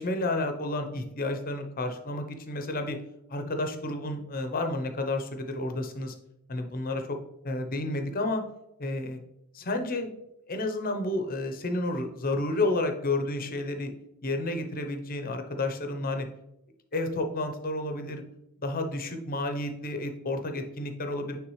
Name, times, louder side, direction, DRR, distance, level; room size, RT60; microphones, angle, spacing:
voice 1, 0.0-3.0 3.3-6.1 6.5-7.2 7.4-8.4 8.8-9.2 9.5-10.1 10.5-13.9 14.2-16.3 16.9-18.2 18.6-21.4, left 2 dB, 40° left, 5 dB, 0.8 m, -31 dB
9.4 x 3.4 x 3.2 m, 0.82 s
head